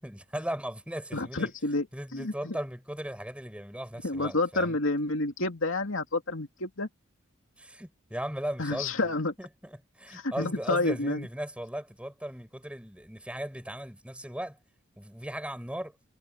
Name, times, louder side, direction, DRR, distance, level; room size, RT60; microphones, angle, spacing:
voice 1, 0.0-1.5 1.9-4.8 7.6-14.6 15.0-15.9, right 1 dB, 5° right, 6.6 m, -37 dB
voice 2, 1.1-1.9 2.1-2.5 4.0-6.9 8.6-9.3 10.1-11.3, left 2 dB, 70° left, 2.7 m, -29 dB
head